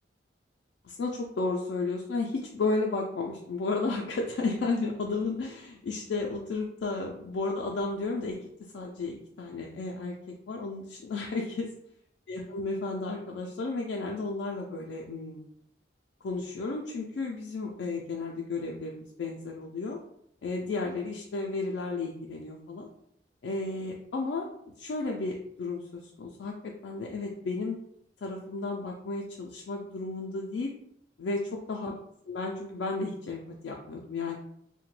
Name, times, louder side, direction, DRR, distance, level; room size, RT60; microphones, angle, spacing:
voice 1, 0.8-10.1 10.5-11.7 12.3-15.5 16.2-20.0 20.4-22.9 23.4-24.5 24.8-27.8 28.2-30.7 31.2-31.4 31.7-31.9 32.3-34.4, left 3 dB, 75° left, 0 dB, 0.3 m, -33 dB
2.8 x 2.1 x 3.0 m, 0.73 s
head